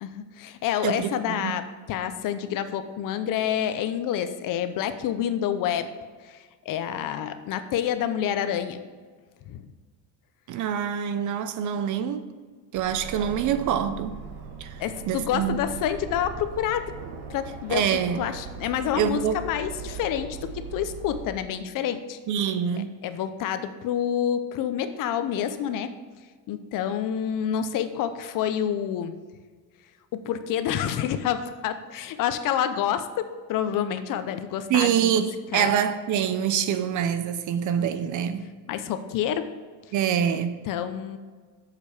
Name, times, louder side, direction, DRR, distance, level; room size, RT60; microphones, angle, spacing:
voice 1, 0.0-5.9 6.2-6.4 6.7-8.8 9.5-9.7 14.8-16.9 17.3-17.8 18.2-22.2 23.0-25.9 26.5-29.1 30.1-35.3 35.5-35.7 38.7-39.5 40.7-41.2, left 9 dB, 50° left, 0.8 m, -28 dB
voice 2, 0.8-1.6 10.5-12.3 12.7-14.2 14.6-14.8 15.1-15.6 17.7-18.2 18.9-19.4 22.3-23.0 34.7-38.5 39.9-40.7, right 8 dB, 50° right, 0.7 m, -25 dB
Aircraft, 12.7-21.2, right 5 dB, 70° right, 1.5 m, -39 dB
8.1 x 6.9 x 5.0 m
cardioid pair, 135°, 41 cm